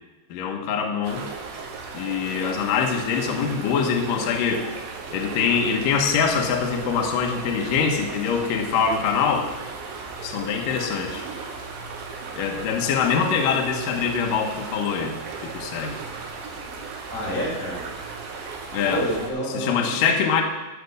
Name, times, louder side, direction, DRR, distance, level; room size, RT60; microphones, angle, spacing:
voice 1, 0.3-1.2 1.9-4.7 5.1-9.5 10.2-11.3 12.4-15.2 15.4-16.0 18.7-19.0 19.5-20.4, left 6 dB, 75° left, 2 dB, 2.1 m, -24 dB
sound 1, 1.0-19.3, right 4 dB, 70° right, 3.7 m, -36 dB
voice 2, 17.1-17.8 18.9-19.9, equal, 40° left, -6 dB, 5.1 m, -28 dB
13.5 x 5.9 x 7.0 m, 1.1 s
omnidirectional pair, 5.6 m